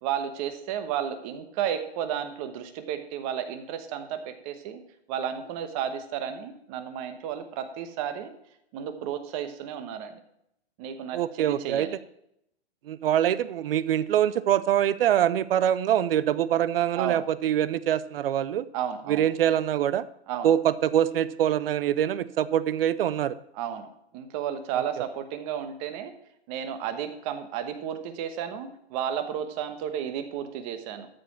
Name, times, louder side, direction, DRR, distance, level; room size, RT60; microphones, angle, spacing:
voice 1, 0.0-4.8 5.1-8.3 8.7-10.1 10.8-12.0 17.0-17.2 18.7-19.2 20.3-20.5 23.5-23.9 24.1-26.1 26.5-31.1, right 9 dB, 30° right, 8 dB, 1.2 m, -32 dB
voice 2, 11.1-11.9 12.9-18.7 19.1-20.0 20.4-23.4, right 11 dB, 60° right, 17 dB, 0.6 m, -24 dB
13.0 x 5.1 x 5.8 m, 0.76 s
hypercardioid pair, 150°, 33 cm